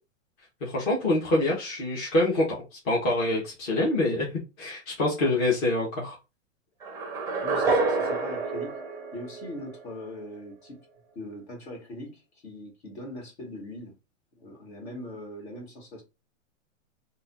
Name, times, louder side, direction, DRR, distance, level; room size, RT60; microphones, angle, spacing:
voice 1, 0.6-2.6 2.8-4.3 4.6-6.1, left 2 dB, 35° left, 1.6 m, -25 dB
sound 1, 6.8-9.9, right 3 dB, 10° right, 0.6 m, -28 dB
voice 2, 7.4-10.8 11.1-14.0 14.4-16.0, left 1 dB, 55° left, 2.3 m, -41 dB
3.9 x 2.7 x 2.8 m
hypercardioid pair, 145°, 38 cm